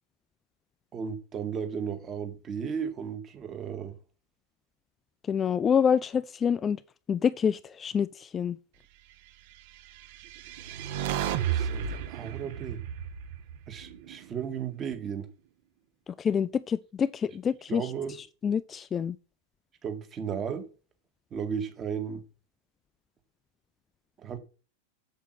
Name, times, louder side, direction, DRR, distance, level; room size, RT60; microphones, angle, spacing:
voice 1, 0.9-4.0 11.3-12.8 13.7-15.3 17.7-18.2 19.8-20.7 21.3-22.2 24.2-24.4, right 7 dB, 25° right, 2.0 m, -35 dB
voice 2, 5.3-6.8 7.1-8.6 16.1-17.8 18.4-19.2, left 7 dB, 20° left, 0.4 m, -27 dB
sound 1, 10.0-14.3, right 9 dB, 50° right, 1.1 m, -33 dB
8.2 x 7.5 x 6.1 m
figure-of-eight pair, 90°, 0 cm